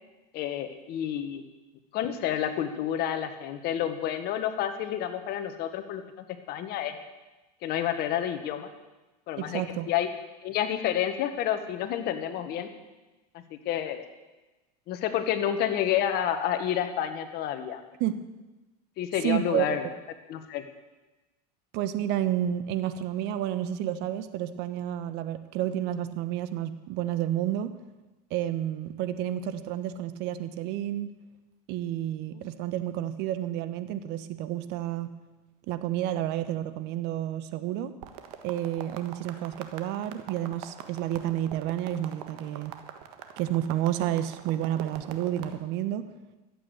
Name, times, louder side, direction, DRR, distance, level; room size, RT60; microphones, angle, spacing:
voice 1, 0.3-1.4 1.9-7.0 7.6-8.7 9.3-9.6 9.9-10.1 10.4-12.7 13.3-14.0 14.9-17.8 19.0-19.9 20.3-20.6 32.3-32.4, left 10 dB, 55° left, 7 dB, 1.6 m, -29 dB
voice 2, 9.4-9.9 18.0-18.2 19.2-19.9 21.7-27.7 28.3-31.1 31.7-35.1 35.7-37.9 38.4-42.7 43.4-46.1, right 12 dB, 60° right, 11 dB, 1.1 m, -30 dB
sound 1, 38.0-45.6, right 10 dB, 75° right, 1.5 m, -43 dB
13.0 x 8.5 x 8.1 m, 1.1 s
supercardioid pair, 115°, 20 cm